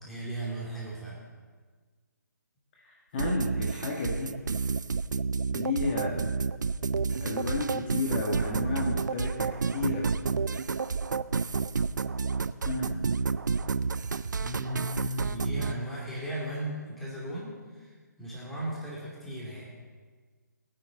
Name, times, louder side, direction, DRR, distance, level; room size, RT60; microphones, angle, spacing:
voice 1, 0.0-1.2 14.4-17.9 18.2-19.7, right 1 dB, ahead, -7 dB, 2.8 m, -36 dB
voice 2, 2.9-4.3 5.5-6.1 7.2-10.1 12.6-13.0, left 3 dB, 35° left, -2 dB, 1.7 m, -32 dB
sound 1, 3.2-15.7, right 5 dB, 75° right, 0.5 m, -30 dB
18.5 x 9.8 x 4.0 m, 1.5 s
figure-of-eight pair, 150°, 10 cm